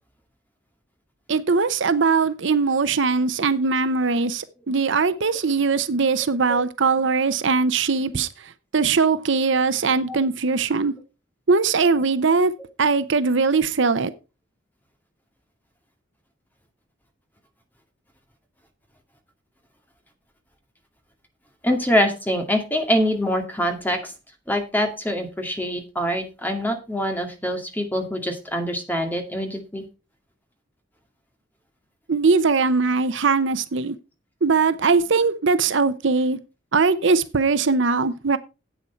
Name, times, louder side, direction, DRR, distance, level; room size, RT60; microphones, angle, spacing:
voice 1, 1.3-8.3 8.7-10.9 11.5-12.5 12.8-14.1 32.1-33.9 34.4-36.4 36.7-38.4, right 4 dB, 65° right, 0.7 m, -20 dB
voice 2, 21.6-24.1 24.5-29.8, equal, 10° left, 2.2 m, -24 dB
11.0 x 8.5 x 4.5 m
head